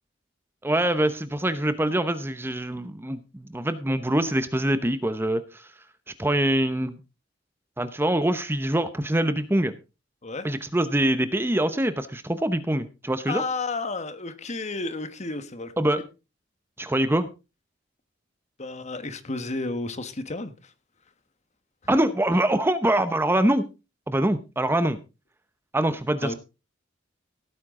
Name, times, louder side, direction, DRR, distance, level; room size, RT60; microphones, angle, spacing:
voice 1, 0.6-5.7 6.2-7.0 7.8-9.7 10.4-13.4 15.8-16.0 16.8-17.3 21.9-23.7 24.1-25.0 25.7-26.3, right 1 dB, 10° right, 12 dB, 0.8 m, -24 dB
voice 2, 13.3-15.7 18.6-20.7 26.2-26.3, left 3 dB, 35° left, 11 dB, 1.3 m, -32 dB
17.0 x 9.1 x 3.7 m, 0.29 s
head